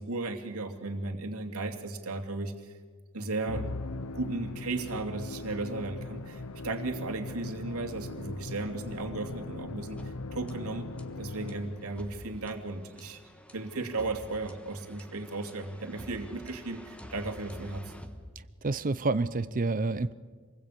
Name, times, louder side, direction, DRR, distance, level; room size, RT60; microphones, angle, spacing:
voice 1, 0.0-2.8 3.1-3.7 4.1-10.9 11.2-13.2 13.5-18.0, right 3 dB, 80° right, 5 dB, 2.6 m, -35 dB
Musical instrument, 3.5-12.0, left 2 dB, 80° left, 0.8 m, -40 dB
sound 1, 10.0-18.9, equal, 5° left, 1.4 m, -49 dB
voice 2, 18.4-20.1, right 3 dB, 40° right, 14 dB, 0.6 m, -29 dB
26.5 x 20.5 x 8.5 m, 1.5 s
head